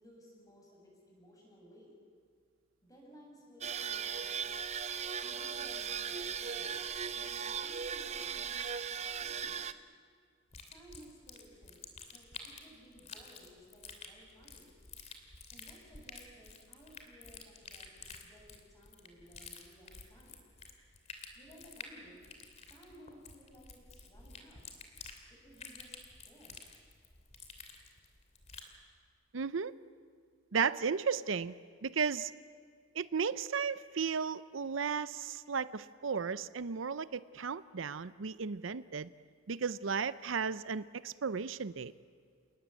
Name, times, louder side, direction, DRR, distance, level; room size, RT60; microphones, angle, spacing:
voice 1, 0.0-1.9 2.8-4.5 5.2-6.8 7.1-9.8 10.7-12.3 12.6-14.8 15.5-20.5 21.3-22.3 22.7-24.6 25.3-26.6, equal, 20° left, -2 dB, 7.3 m, -58 dB
sound 1, 3.6-9.7, right 7 dB, 35° right, 0.7 m, -38 dB
sound 2, 10.5-28.8, left 4 dB, 35° left, 2.7 m, -51 dB
voice 2, 29.3-29.7 30.5-31.5 31.8-32.3 32.9-39.1 39.5-41.9, right 6 dB, 80° right, 16 dB, 0.6 m, -34 dB
28.0 x 20.0 x 8.3 m, 2.1 s
head